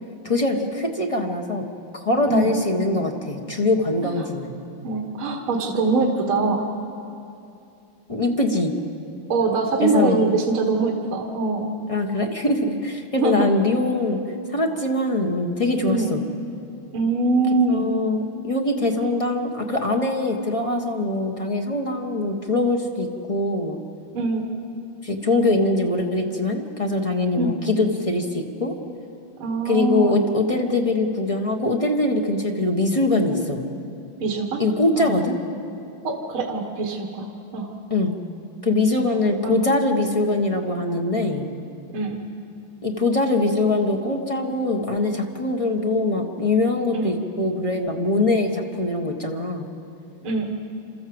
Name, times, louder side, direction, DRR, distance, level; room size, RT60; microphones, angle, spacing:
voice 1, 0.2-1.6 2.0-4.5 8.1-8.7 9.8-10.2 11.9-14.2 14.5-16.2 17.7-23.8 25.0-28.8 29.6-33.6 34.6-35.4 37.9-38.1 38.6-41.5 42.8-49.7, left 2 dB, 20° left, 1 dB, 1.2 m, -23 dB
voice 2, 2.3-2.6 4.0-4.3 4.8-6.6 9.3-11.7 13.2-13.5 15.8-16.1 16.9-17.9 24.1-24.5 27.3-27.5 29.4-30.3 34.2-34.6 35.0-35.2 36.0-37.7 39.4-39.6 41.9-42.2 46.9-47.1 50.2-50.5, right 3 dB, 70° right, 1 dB, 2.4 m, -23 dB
29.5 x 13.0 x 7.9 m, 2.6 s
omnidirectional pair, 2.4 m